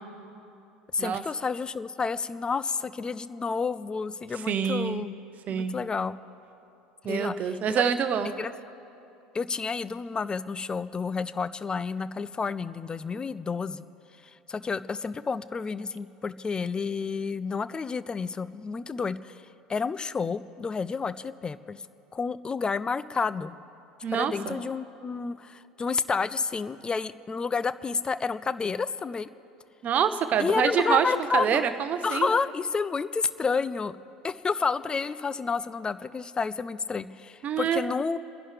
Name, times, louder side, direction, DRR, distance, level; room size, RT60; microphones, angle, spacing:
voice 1, 0.9-5.1 5.5-6.2 7.0-7.9 8.4-8.5 9.3-13.8 14.5-19.4 19.7-21.8 22.1-23.6 24.1-29.3 30.4-31.6 32.0-33.9 34.2-38.2, left 5 dB, 20° left, 15 dB, 0.4 m, -30 dB
voice 2, 4.5-5.0 5.5-5.8 7.0-8.3 24.0-24.6 29.8-32.3 37.4-37.8, right 7 dB, 35° right, 10 dB, 0.9 m, -26 dB
29.5 x 11.0 x 3.4 m, 2.8 s
figure-of-eight pair, 70°, 4 cm